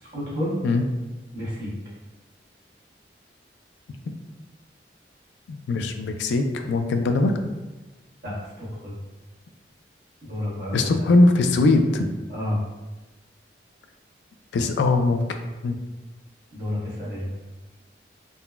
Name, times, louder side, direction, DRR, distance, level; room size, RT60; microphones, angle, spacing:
voice 1, 0.1-0.6 1.3-1.7 8.2-8.9 10.2-10.8 12.3-12.6 16.5-17.3, left 1 dB, 60° right, -8 dB, 1.2 m, -30 dB
voice 2, 5.5-7.5 10.7-12.1 14.5-15.2 15.6-15.8, left 2 dB, 80° left, 6 dB, 0.3 m, -20 dB
3.8 x 2.1 x 2.3 m, 1.1 s
head